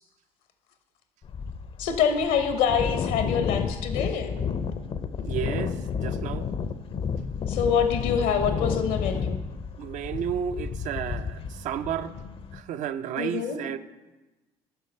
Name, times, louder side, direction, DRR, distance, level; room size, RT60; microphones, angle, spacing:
sound 1, 1.2-12.6, left 6 dB, 40° left, 0.5 m, -31 dB
voice 1, 1.8-4.3 7.5-9.4 13.2-13.6, left 7 dB, 75° left, 0.8 m, -25 dB
voice 2, 5.3-6.5 9.8-12.1 12.5-13.8, right 9 dB, 60° right, 0.4 m, -32 dB
6.8 x 5.7 x 4.3 m
hypercardioid pair, 65°, 14 cm